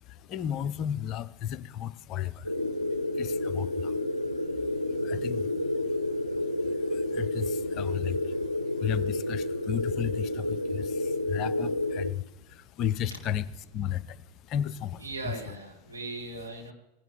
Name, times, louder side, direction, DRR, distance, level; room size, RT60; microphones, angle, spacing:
voice 1, 0.0-2.5 2.9-4.0 4.6-15.3, left 10 dB, 35° left, 15 dB, 0.5 m, -35 dB
sound 1, 2.5-12.1, left 1 dB, 85° left, 0.5 m, -30 dB
voice 2, 15.0-16.7, right 3 dB, 80° right, 1 dB, 2.0 m, -39 dB
17.0 x 10.5 x 3.5 m, 0.90 s
figure-of-eight pair, 90°, 0 cm